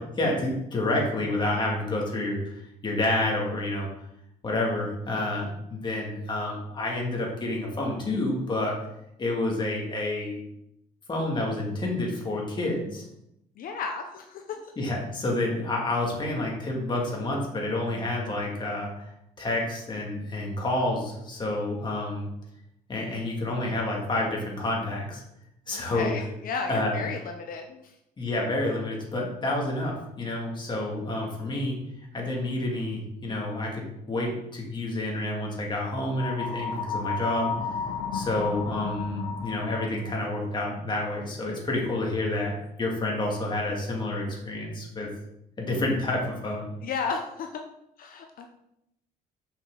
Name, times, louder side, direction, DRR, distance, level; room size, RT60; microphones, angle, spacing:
voice 1, 0.0-3.9 4.4-8.8 9.2-10.4 11.1-13.1 14.8-22.3 22.9-25.2 25.7-26.1 26.7-27.0 28.2-31.8 32.1-37.5 38.1-45.1 45.6-46.7, left 2 dB, 25° left, -2 dB, 2.2 m, -29 dB
voice 2, 5.1-5.5 13.6-14.7 25.7-28.0 46.8-47.6 48.0-48.5, left 5 dB, 55° left, 4 dB, 0.7 m, -34 dB
sound 1, 36.1-40.1, left 5 dB, 85° left, 2.1 m, -33 dB
6.0 x 6.0 x 3.9 m, 0.82 s
cardioid pair, 110°, 17 cm